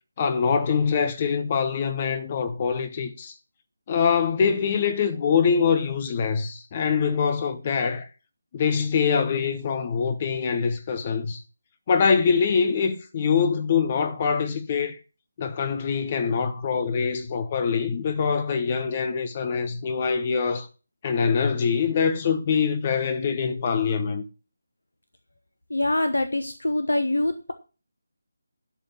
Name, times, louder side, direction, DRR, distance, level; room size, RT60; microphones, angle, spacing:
voice 1, 0.2-3.3 3.9-8.1 8.5-11.4 11.9-15.0 15.4-20.7 21.0-24.2, left 6 dB, 30° left, 0.9 m, -24 dB
voice 2, 25.7-27.5, left 1 dB, 80° left, 1.2 m, -24 dB
11.5 x 5.4 x 7.0 m
figure-of-eight pair, 155°, 0 cm